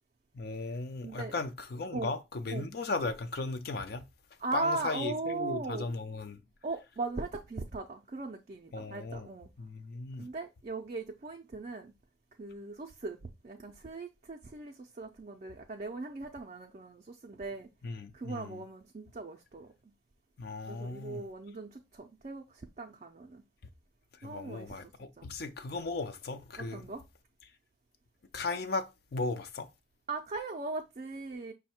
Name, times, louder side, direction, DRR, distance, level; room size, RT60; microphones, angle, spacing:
voice 1, 0.3-4.0 4.5-6.4 8.7-9.3 9.6-10.3 17.8-18.6 20.4-21.3 24.2-26.9 28.3-29.7, left 3 dB, 55° left, 0.4 m, -36 dB
voice 2, 1.0-1.3 1.9-2.1 2.5-2.7 4.4-5.9 6.6-9.5 10.2-11.9 12.4-17.7 18.1-19.7 20.7-23.4 24.2-24.8 25.2-25.3 26.6-27.0 30.1-31.5, right 3 dB, 40° right, 0.4 m, -39 dB
5.4 x 2.1 x 4.2 m
head